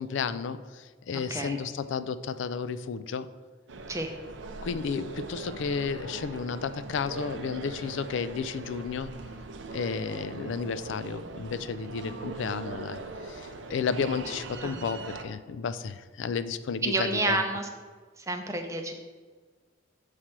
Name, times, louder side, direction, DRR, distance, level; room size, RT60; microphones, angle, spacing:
voice 1, 0.0-3.3 4.6-9.1 9.7-17.4, left 5 dB, 65° left, 14 dB, 0.3 m, -32 dB
sound 1, 3.7-15.2, right 3 dB, 60° right, 0.5 m, -41 dB
voice 2, 16.8-17.7 18.3-19.0, right 2 dB, 15° right, 4 dB, 0.5 m, -29 dB
7.2 x 3.3 x 5.8 m, 1.5 s
head